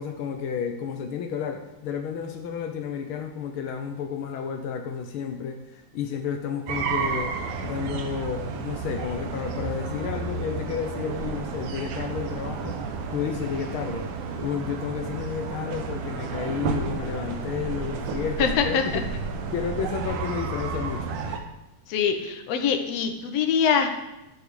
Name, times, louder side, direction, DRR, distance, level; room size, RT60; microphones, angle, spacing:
voice 1, 0.0-12.8 13.1-19.1 19.5-21.1, left 7 dB, 85° left, 5 dB, 1.1 m, -31 dB
sound 1, 6.7-21.4, right 5 dB, 85° right, 2.6 m, -31 dB
voice 2, 18.4-19.0 21.9-23.9, left 7 dB, 65° left, 5 dB, 2.1 m, -24 dB
12.0 x 7.2 x 6.3 m, 0.96 s
omnidirectional pair, 3.5 m